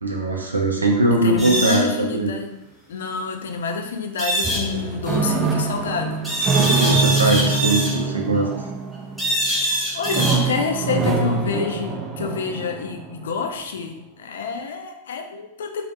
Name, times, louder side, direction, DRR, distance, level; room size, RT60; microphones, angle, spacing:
voice 1, 0.0-2.3 6.6-8.5, right 2 dB, 85° right, 1 dB, 0.4 m, -21 dB
voice 2, 1.1-2.6 2.9-6.3 7.0-7.7 9.5-15.9, left 5 dB, 70° left, 4 dB, 0.3 m, -28 dB
sound 1, 1.4-1.8 4.2-4.6 6.2-7.9 9.2-10.4, right 1 dB, ahead, 0.8 m, -23 dB
sound 2, 4.4-9.6 10.0-13.2, right 4 dB, 20° right, 0.3 m, -24 dB
2.3 x 2.0 x 2.7 m, 0.91 s
figure-of-eight pair, 95°, 0 cm